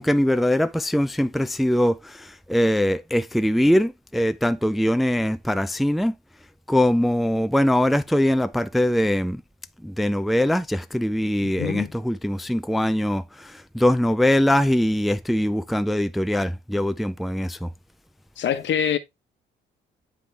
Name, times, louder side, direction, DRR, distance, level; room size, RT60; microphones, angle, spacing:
voice 1, 0.0-6.1 6.7-9.4 9.8-17.7, left 1 dB, ahead, 0.4 m, -22 dB
voice 2, 11.4-11.9 18.4-19.0, left 8 dB, 65° left, 1.1 m, -25 dB
9.7 x 3.7 x 3.4 m
cardioid pair, 90°, 20 cm